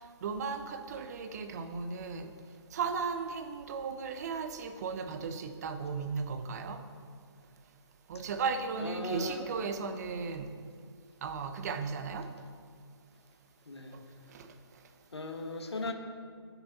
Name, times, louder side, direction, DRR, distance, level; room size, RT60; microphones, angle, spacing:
voice 1, 0.2-2.3 2.7-6.8 8.1-10.5 11.2-12.3 13.9-14.0 14.3-14.5 15.9-16.0, right 5 dB, 35° right, 8 dB, 1.0 m, -36 dB
voice 2, 8.8-9.5 13.7-14.0 15.1-15.9, left 2 dB, 70° left, 3 dB, 1.7 m, -37 dB
20.0 x 6.9 x 4.1 m, 2.1 s
figure-of-eight pair, 140°, 14 cm